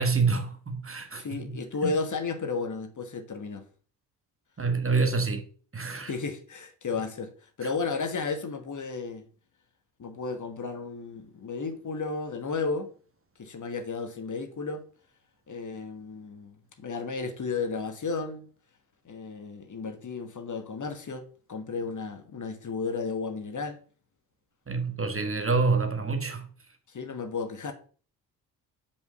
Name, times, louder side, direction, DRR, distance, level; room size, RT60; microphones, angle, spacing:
voice 1, 0.0-1.2 1.8-1.9 4.6-5.4 5.7-6.1 24.7-26.5, right 4 dB, 25° right, 1.6 m, -27 dB
voice 2, 1.2-3.7 6.1-9.3 10.0-12.9 13.4-14.8 15.5-18.5 19.0-23.8 26.9-27.7, left 4 dB, 40° left, 1.5 m, -33 dB
5.4 x 5.1 x 6.4 m
hypercardioid pair, 45°, 48 cm